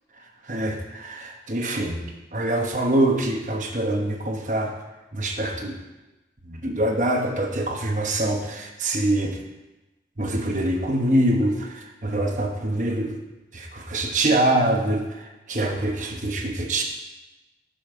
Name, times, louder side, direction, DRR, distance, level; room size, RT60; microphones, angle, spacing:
voice 1, 0.5-2.0 2.3-4.7 5.1-5.8 6.5-9.4 10.2-13.1 13.5-16.8, right 1 dB, 45° right, 2 dB, 1.1 m, -24 dB
12.0 x 5.6 x 4.4 m, 1.1 s
head